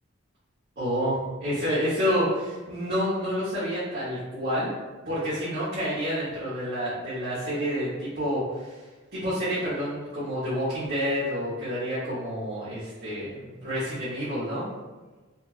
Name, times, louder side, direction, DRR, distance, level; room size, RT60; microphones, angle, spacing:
voice 1, 0.8-4.7 5.0-8.8 9.1-14.6, equal, 55° right, -12 dB, 1.2 m, -29 dB
4.2 x 2.6 x 2.2 m, 1.2 s
head